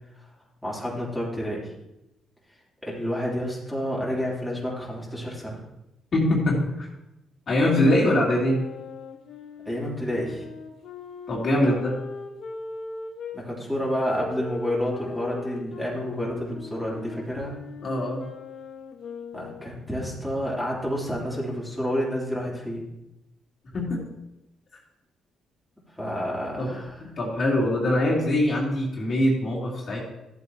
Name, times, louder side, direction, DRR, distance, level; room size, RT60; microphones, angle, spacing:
voice 1, 0.6-1.6 2.8-5.6 9.6-10.4 13.3-17.5 19.3-22.8 26.0-26.9, equal, ahead, -6 dB, 3.3 m, -29 dB
voice 2, 6.1-6.9 7.5-8.6 11.3-12.0 17.8-18.3 23.7-24.0 26.6-30.0, left 1 dB, 50° left, -4 dB, 2.9 m, -23 dB
sound 1, 7.6-13.4 14.1-19.8, left 4 dB, 65° left, 1.5 m, -39 dB
13.5 x 8.1 x 3.0 m, 0.90 s
cardioid pair, 90°, 0 cm